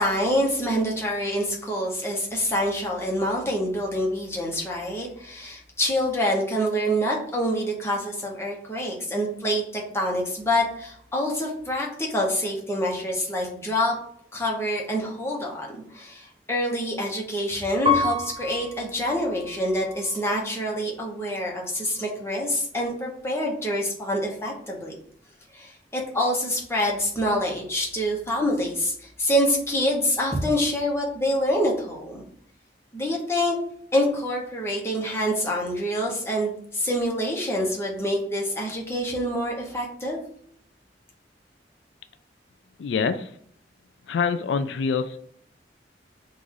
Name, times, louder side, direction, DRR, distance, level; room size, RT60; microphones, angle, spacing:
voice 1, 0.0-14.0 14.3-24.9 25.5-32.2 32.9-33.6 33.9-40.2, equal, 15° left, -2 dB, 1.0 m, -26 dB
Piano, 17.9-20.6 21.2-21.9, left 4 dB, 30° right, 0.8 m, -30 dB
voice 2, 42.8-43.3 44.1-45.2, left 5 dB, 90° left, 11 dB, 0.3 m, -25 dB
3.9 x 2.5 x 4.7 m, 0.64 s
head